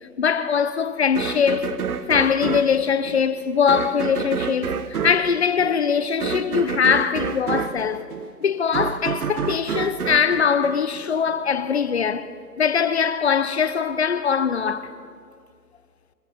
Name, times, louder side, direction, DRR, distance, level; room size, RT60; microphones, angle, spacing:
voice 1, 0.2-1.7 2.1-8.1 8.4-15.0, left 6 dB, 40° left, 0.9 m, -22 dB
sound 1, 1.2-11.4, right 7 dB, 60° right, 1.1 m, -29 dB
27.5 x 26.5 x 4.2 m
hypercardioid pair, 175°, 49 cm